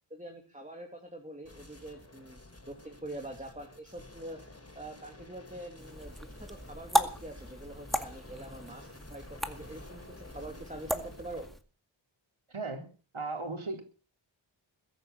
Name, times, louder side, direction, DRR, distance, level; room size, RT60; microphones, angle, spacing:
voice 1, 0.1-2.4 2.7-4.4 4.7-6.1 6.4-11.5, right 1 dB, 15° right, 2 dB, 2.9 m, -45 dB
sound 1, 1.4-11.5, left 2 dB, 30° left, 4.9 m, -51 dB
sound 2, 5.8-11.6, equal, ahead, 2.0 m, -36 dB
voice 2, 12.5-12.9 13.1-13.8, right 3 dB, 70° right, 4 dB, 4.0 m, -36 dB
21.5 x 8.8 x 7.2 m, 0.38 s
wide cardioid pair, 60°, 50 cm